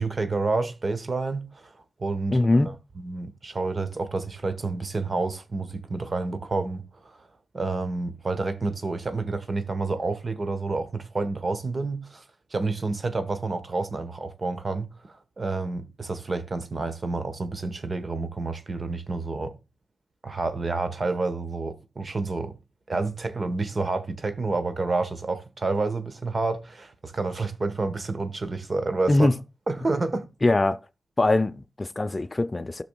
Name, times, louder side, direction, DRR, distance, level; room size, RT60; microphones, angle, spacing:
voice 1, 0.0-7.3 7.5-12.2 12.5-19.5 20.2-22.6 22.9-29.3 29.7-30.3, right 3 dB, 45° right, 1.2 m, -29 dB
voice 2, 2.3-2.7 29.1-29.3 30.4-30.8 31.2-32.8, left 2 dB, 30° left, 0.5 m, -22 dB
17.0 x 6.1 x 2.3 m
wide cardioid pair, 75°, 0 cm